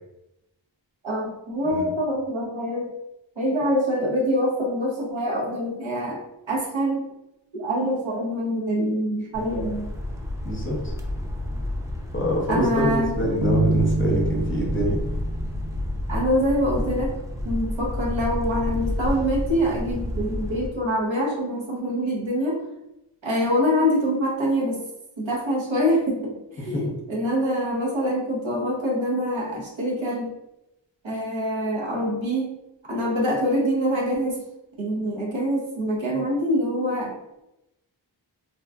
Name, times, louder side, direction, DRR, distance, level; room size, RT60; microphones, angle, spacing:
voice 1, 1.0-2.9 3.4-6.2 6.5-7.0 7.5-9.9 12.5-13.1 16.1-17.1 17.4-22.6 23.2-24.8 25.2-30.3 31.0-32.5 32.9-34.4 34.8-37.2, equal, 85° right, -3 dB, 1.0 m, -25 dB
sound 1, 9.3-20.7, left 1 dB, 5° right, 0.4 m, -30 dB
voice 2, 10.4-10.8 12.1-15.0 26.6-26.9, equal, 25° left, -2 dB, 0.7 m, -25 dB
Bass guitar, 13.4-16.5, right 2 dB, 50° right, 0.7 m, -26 dB
3.0 x 2.4 x 2.3 m, 0.90 s
wide cardioid pair, 70°, 45 cm